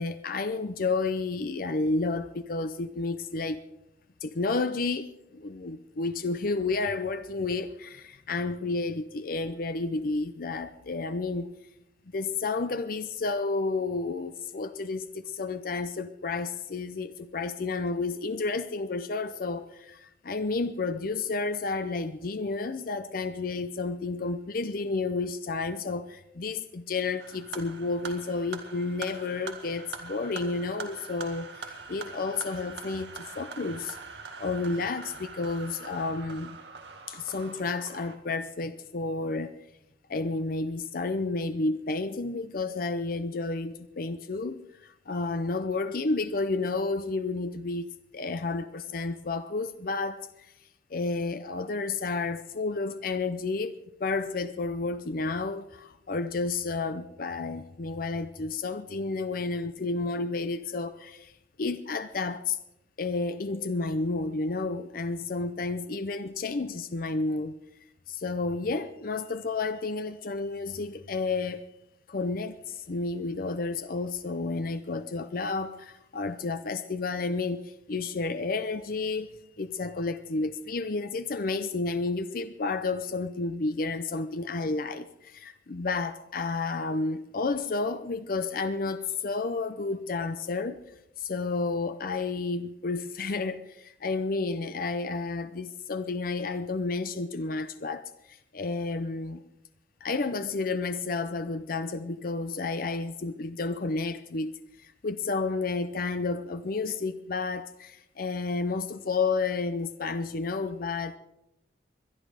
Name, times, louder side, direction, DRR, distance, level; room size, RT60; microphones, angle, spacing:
voice 1, 0.0-3.6 4.2-11.5 12.1-36.6 37.1-39.6 40.1-47.9 48.1-50.5 50.9-53.7 54.0-61.3 61.6-62.6 63.0-67.5 68.1-71.6 72.1-90.8 91.2-99.4 100.0-104.5 104.8-111.2, left 3 dB, 55° left, 0.6 m, -31 dB
sound 1, 27.2-38.2, right 4 dB, 90° right, 1.8 m, -43 dB
22.0 x 11.5 x 4.8 m
head